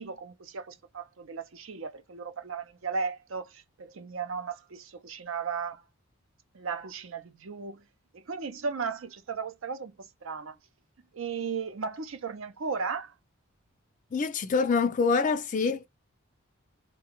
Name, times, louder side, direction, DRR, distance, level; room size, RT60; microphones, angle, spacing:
voice 1, 0.0-5.8 6.5-7.8 8.1-10.6 11.1-13.1, right 5 dB, 65° right, 0.6 m, -36 dB
voice 2, 14.1-15.9, left 4 dB, 35° left, 0.3 m, -25 dB
3.8 x 2.3 x 2.9 m
head